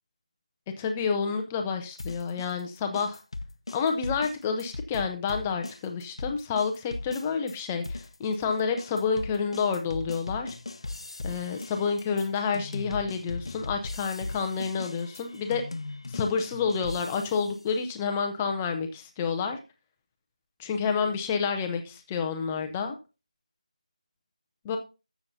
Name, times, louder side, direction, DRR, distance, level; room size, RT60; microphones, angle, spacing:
voice 1, 0.8-3.2 3.7-10.6 11.2-15.6 16.1-19.6 20.6-22.9 24.6-24.8, left 5 dB, 5° left, 5 dB, 0.5 m, -29 dB
sound 1, 2.0-7.6 7.8-17.6, left 2 dB, 45° left, 0.7 m, -38 dB
13.5 x 7.0 x 2.7 m, 0.29 s
figure-of-eight pair, 170°, 4 cm